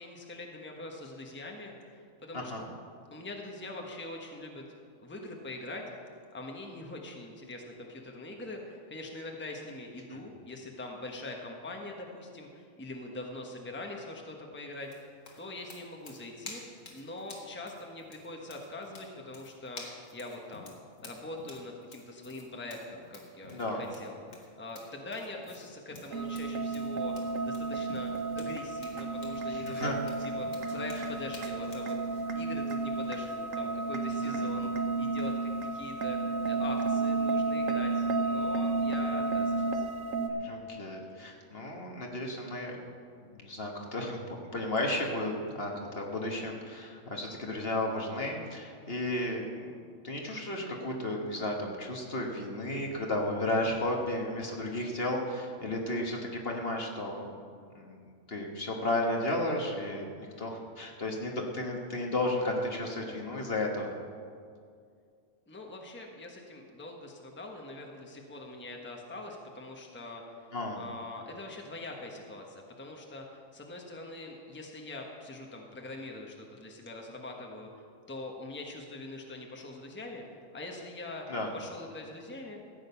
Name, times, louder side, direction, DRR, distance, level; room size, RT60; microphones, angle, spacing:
voice 1, 0.0-2.6 3.1-4.6 5.0-5.8 6.3-16.6 16.9-20.7 21.0-27.1 27.4-28.1 28.3-34.7 35.0-39.8 65.5-81.3 81.5-82.6, left 2 dB, 10° left, 1 dB, 1.2 m, -43 dB
sound 1, 14.8-31.9, left 3 dB, 70° left, 2.0 m, -51 dB
voice 2, 23.5-23.8 29.5-30.0 34.2-34.5 40.4-42.7 43.3-44.2 44.5-49.7 50.0-56.2 56.4-57.3 57.7-58.0 58.3-60.1 60.4-64.0 70.5-70.8 81.3-81.5, left 1 dB, 50° left, 0 dB, 1.6 m, -33 dB
sound 2, 26.1-40.3, right 3 dB, 80° right, 1.4 m, -32 dB
14.5 x 9.0 x 5.7 m, 2.3 s
omnidirectional pair, 1.4 m